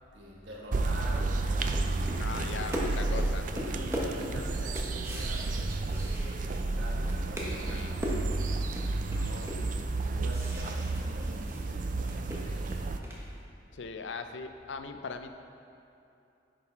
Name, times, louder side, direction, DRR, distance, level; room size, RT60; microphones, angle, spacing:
voice 1, 0.1-8.7 9.0-9.6 10.0-12.7, equal, 75° right, -3 dB, 1.5 m, -46 dB
sound 1, 0.7-13.0, right 2 dB, 45° right, 0.4 m, -31 dB
sound 2, 1.4-6.7 7.0-11.6 11.9-13.3, equal, 15° right, 1.2 m, -39 dB
sound 3, 1.6-8.0, equal, 50° left, 1.0 m, -51 dB
voice 2, 2.2-3.4 7.7-7.9 9.1-9.6 13.7-15.3, left 4 dB, 70° left, 7 dB, 0.5 m, -40 dB
10.0 x 5.6 x 4.6 m, 2.7 s
head